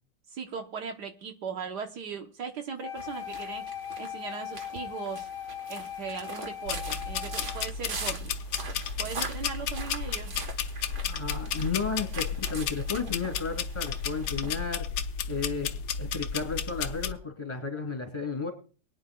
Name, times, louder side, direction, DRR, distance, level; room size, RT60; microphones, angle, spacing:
voice 1, 0.3-3.6 4.0-5.3 5.7-8.3 9.0-10.3, right 6 dB, 70° right, 5 dB, 1.6 m, -38 dB
Wind instrument woodwind instrument, 2.8-7.7, left 9 dB, 75° left, 1.4 m, -39 dB
sound 1, 3.0-14.6, right 4 dB, 45° right, 1.5 m, -43 dB
sound 2, 6.7-17.1, left 6 dB, 90° left, 1.4 m, -33 dB
voice 2, 11.0-14.8 15.3-15.7 16.0-18.5, left 5 dB, 15° left, 4 dB, 3.0 m, -33 dB
23.5 x 9.4 x 2.3 m, 0.37 s
omnidirectional pair, 1.9 m